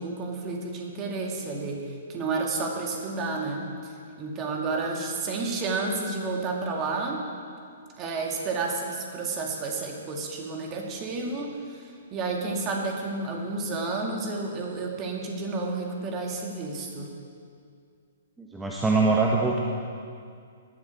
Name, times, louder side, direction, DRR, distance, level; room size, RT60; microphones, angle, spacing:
voice 1, 0.0-3.9 4.2-7.2 8.0-17.2, right 3 dB, 25° right, 0 dB, 2.5 m, -31 dB
voice 2, 18.4-19.6, right 3 dB, 10° right, -2 dB, 1.3 m, -23 dB
19.0 x 12.0 x 4.7 m, 2.3 s
figure-of-eight pair, 120°, 0 cm